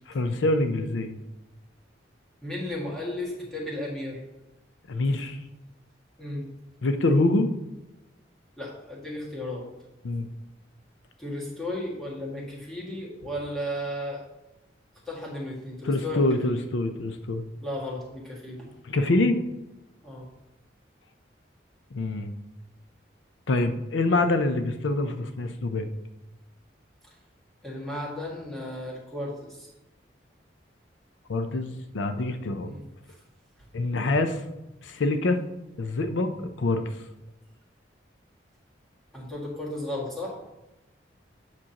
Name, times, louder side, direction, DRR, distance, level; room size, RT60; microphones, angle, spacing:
voice 1, 0.1-1.2 4.9-5.4 6.8-7.5 10.0-10.3 15.8-17.4 18.8-19.4 21.9-22.3 23.5-25.9 31.3-32.7 33.7-34.4 34.8-35.4 35.8-36.8, left 2 dB, 85° left, 8 dB, 0.6 m, -25 dB
voice 2, 2.4-4.2 6.2-6.5 8.6-9.7 11.2-14.2 15.1-16.3 17.6-18.7 20.0-20.3 27.6-29.7 32.7-32.8 39.1-40.4, left 1 dB, ahead, -5 dB, 2.0 m, -34 dB
8.7 x 6.1 x 2.9 m, 0.95 s
head